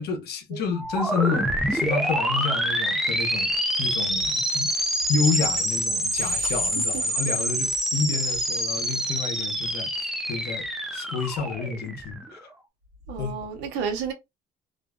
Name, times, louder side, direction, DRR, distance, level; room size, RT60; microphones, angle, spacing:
voice 1, 0.0-3.5 3.8-4.7 5.1-12.4 13.2-13.4, left 5 dB, 70° left, 0.8 m, -30 dB
sound 1, 0.7-12.4, equal, ahead, 0.5 m, -26 dB
voice 2, 6.2-6.6 6.9-7.0 13.1-14.1, right 6 dB, 90° right, 0.9 m, -32 dB
2.5 x 2.2 x 2.2 m
cardioid pair, 110°, 17 cm